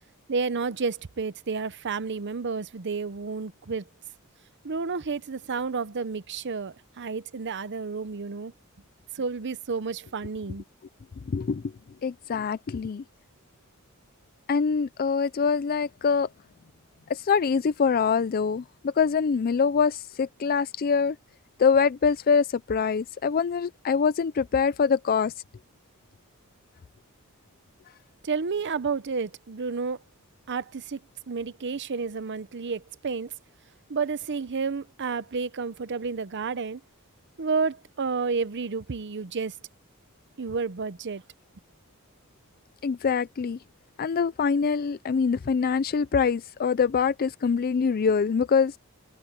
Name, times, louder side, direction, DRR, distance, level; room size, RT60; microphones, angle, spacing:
voice 1, 0.3-3.8 4.6-8.5 9.1-10.6 28.2-30.0 30.5-31.0 31.3-33.3 33.9-36.8 37.4-39.5 40.4-41.2, right 4 dB, 55° right, 0.7 m, -30 dB
voice 2, 11.3-11.6 12.0-13.0 14.5-16.3 17.1-21.2 21.6-25.3 42.8-43.6 44.0-48.8, left 6 dB, 40° left, 0.4 m, -24 dB
head